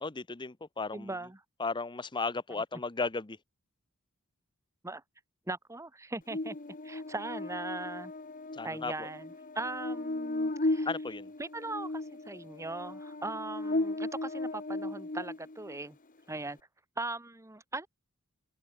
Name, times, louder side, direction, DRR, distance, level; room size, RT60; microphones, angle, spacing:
voice 1, 0.0-1.2 1.6-3.4 8.5-9.1 10.9-11.3, left 4 dB, 20° left, 0.7 m, -35 dB
voice 2, 0.9-1.4 2.5-2.6 4.8-5.0 5.5-6.6 6.8-8.1 8.6-10.9 11.4-16.0 16.3-16.6 17.0-17.9, right 2 dB, 15° right, 1.2 m, -39 dB
Buzz, 6.3-15.8, left 2 dB, 35° left, 1.3 m, -36 dB
open air
head